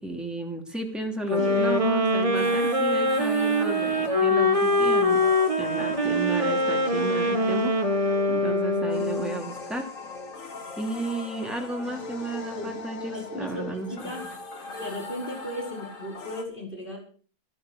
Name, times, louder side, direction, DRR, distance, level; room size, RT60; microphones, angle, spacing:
voice 1, 0.0-5.2 5.6-9.9 10.8-14.1, right 2 dB, ahead, 1 dB, 2.7 m, -33 dB
sound 1, 1.3-9.5, left 1 dB, 20° right, 1.5 m, -23 dB
sound 2, 1.4-16.4, left 3 dB, 55° left, 2.4 m, -39 dB
voice 2, 1.4-1.9 12.5-12.7 13.1-14.2 14.8-17.0, left 1 dB, 30° left, 0 dB, 5.2 m, -36 dB
14.0 x 12.5 x 6.2 m, 0.42 s
omnidirectional pair, 1.6 m